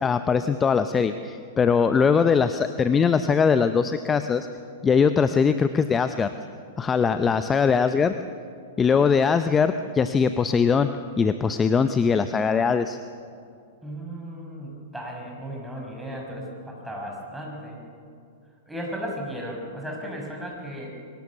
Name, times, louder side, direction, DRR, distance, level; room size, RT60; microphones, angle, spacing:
voice 1, 0.0-4.5 4.8-6.3 6.8-8.1 8.8-10.9 11.2-13.0, left 6 dB, 20° left, 10 dB, 0.7 m, -21 dB
voice 2, 13.8-17.8 18.7-21.0, equal, 5° right, -1 dB, 5.9 m, -35 dB
23.5 x 19.0 x 7.2 m, 2.4 s
figure-of-eight pair, 105°, 0 cm